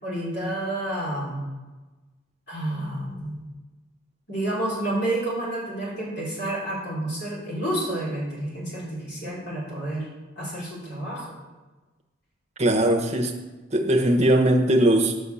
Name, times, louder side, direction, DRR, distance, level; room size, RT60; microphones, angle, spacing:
voice 1, 0.0-1.5 2.5-3.5 4.3-10.1 10.3-11.3, right 1 dB, 55° left, -6 dB, 3.4 m, -29 dB
voice 2, 12.6-13.3 13.7-15.1, right 1 dB, 35° right, 2 dB, 1.0 m, -20 dB
7.0 x 5.8 x 7.0 m, 1.2 s
head